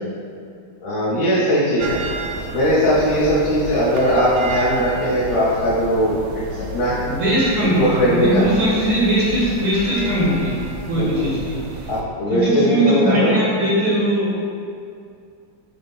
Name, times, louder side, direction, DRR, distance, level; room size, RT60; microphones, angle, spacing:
voice 1, 0.8-2.0 2.5-6.2 6.6-7.1 7.8-8.5 11.0-11.3 11.9-13.3, equal, 70° left, -11 dB, 2.0 m, -19 dB
sound 1, 1.8-12.0, right 3 dB, 75° right, 1.0 m, -32 dB
voice 2, 7.1-11.8 12.3-14.5, right 1 dB, 60° right, -8 dB, 2.3 m, -20 dB
7.4 x 2.5 x 5.4 m, 2.3 s
omnidirectional pair, 2.3 m